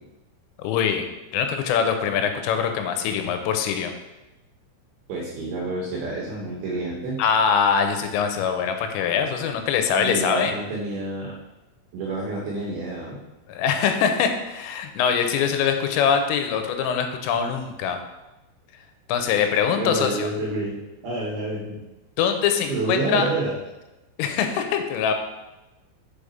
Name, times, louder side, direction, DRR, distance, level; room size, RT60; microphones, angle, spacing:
voice 1, 0.6-1.1 1.3-3.9 7.2-10.5 13.5-18.0 19.1-20.3 22.2-23.3 24.2-25.1, left 7 dB, 85° left, 6 dB, 3.3 m, -23 dB
voice 2, 5.1-7.2 10.0-11.3 11.9-13.2 19.8-20.8 21.0-21.8 22.7-23.5, right 2 dB, 75° right, -3 dB, 2.4 m, -28 dB
6.7 x 4.8 x 5.1 m, 1.0 s
omnidirectional pair, 5.7 m